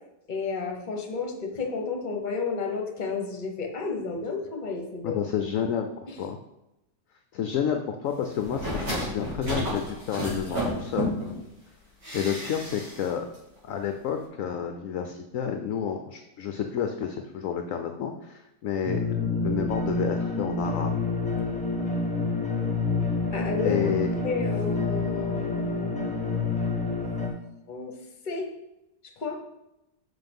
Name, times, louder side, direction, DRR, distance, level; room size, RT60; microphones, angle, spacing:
voice 1, 0.3-5.2 6.1-6.2 23.3-23.8 24.2-26.1 27.7-27.9 28.2-28.5 29.2-29.4, left 4 dB, 30° left, 3 dB, 1.0 m, -31 dB
voice 2, 5.0-5.9 6.2-6.4 7.3-11.1 12.1-13.3 13.7-21.0 23.6-24.1, left 8 dB, 65° left, 5 dB, 0.8 m, -30 dB
sound 1, 8.4-11.4 12.0-13.1 13.3-13.4, equal, 70° right, 3.7 m, -32 dB
sound 2, 18.9-27.3, left 3 dB, 5° left, 0.8 m, -28 dB
6.0 x 5.8 x 5.3 m, 0.91 s
omnidirectional pair, 1.9 m